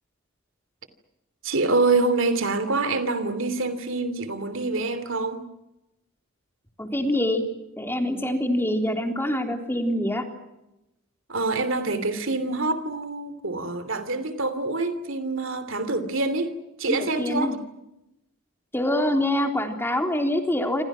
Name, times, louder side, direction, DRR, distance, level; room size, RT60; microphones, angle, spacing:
voice 1, 1.4-5.4 11.3-17.6, right 3 dB, 65° right, 2.9 m, -26 dB
voice 2, 6.8-7.4 7.8-10.2 16.9-17.6 18.7-20.8, left 1 dB, 10° left, 3.6 m, -25 dB
28.5 x 26.5 x 6.2 m
head